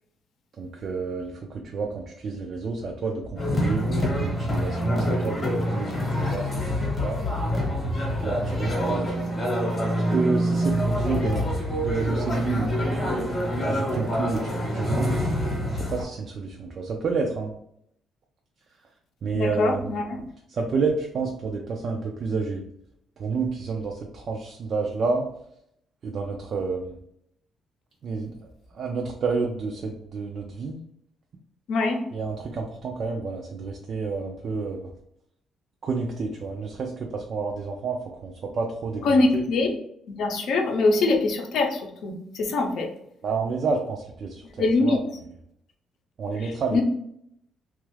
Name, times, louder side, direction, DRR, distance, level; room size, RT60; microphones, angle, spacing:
voice 1, 0.6-3.9 4.2-5.9 6.2-7.2 8.2-9.1 10.1-11.5 11.8-12.7 13.6-15.2 15.7-17.5 19.2-19.9 20.5-22.6 23.2-25.3 26.0-27.0 28.0-28.4 28.7-30.8 32.1-34.9 35.8-39.4 43.2-45.0 46.2-46.8, right 4 dB, 40° right, 1 dB, 0.4 m, -29 dB
sound 1, 3.4-16.0, equal, 20° left, 0.9 m, -26 dB
voice 2, 19.3-20.2 31.7-32.0 39.0-39.7 40.1-42.9 44.4-45.0 46.4-46.8, left 3 dB, 55° left, 3 dB, 0.6 m, -23 dB
3.1 x 2.3 x 3.1 m, 0.74 s
cardioid pair, 175°, 0 cm